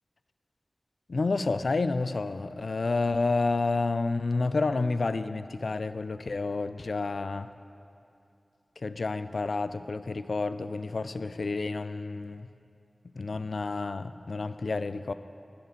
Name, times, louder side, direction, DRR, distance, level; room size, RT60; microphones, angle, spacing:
voice 1, 1.1-7.5 8.8-12.5 13.1-15.1, left 3 dB, 80° left, 12 dB, 0.4 m, -30 dB
11.5 x 5.8 x 8.9 m, 2.5 s
wide cardioid pair, 55°, 0 cm